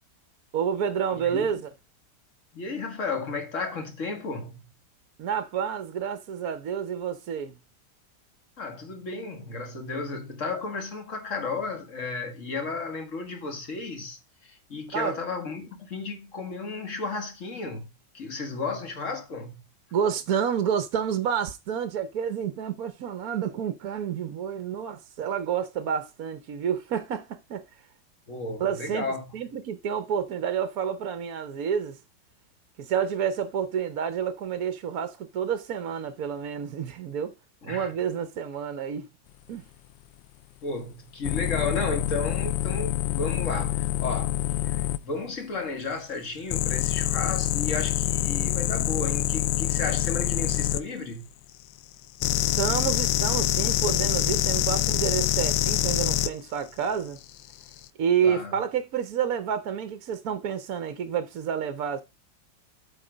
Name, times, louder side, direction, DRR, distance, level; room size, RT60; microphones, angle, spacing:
voice 1, 0.5-1.7 5.2-7.6 14.9-15.1 19.9-27.6 28.6-29.1 29.3-32.0 32.8-37.3 37.6-39.1 39.5-39.6 52.6-57.2 58.0-62.0, right 8 dB, 60° right, 1.1 m, -29 dB
voice 2, 1.1-1.5 2.5-4.6 8.6-19.6 28.3-29.3 37.6-37.9 40.6-51.3 58.2-58.6, left 3 dB, 45° left, 2.0 m, -33 dB
sound 1, 41.2-45.0 46.5-50.8 52.2-56.3 57.5-57.8, left 13 dB, 90° left, 1.3 m, -25 dB
8.3 x 4.9 x 5.0 m
omnidirectional pair, 2.0 m